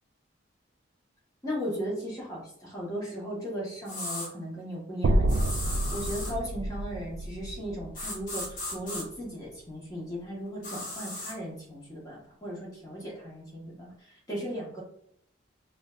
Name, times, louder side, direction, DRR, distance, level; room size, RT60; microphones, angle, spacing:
voice 1, 1.4-14.8, equal, 20° left, -4 dB, 1.2 m, -37 dB
sound 1, 3.9-4.3 5.3-6.4 7.9-9.0 10.6-11.3, left 1 dB, 45° left, 1.2 m, -36 dB
sound 2, 5.0-9.2, right 1 dB, 80° right, 0.3 m, -29 dB
4.9 x 2.5 x 2.4 m, 0.71 s
head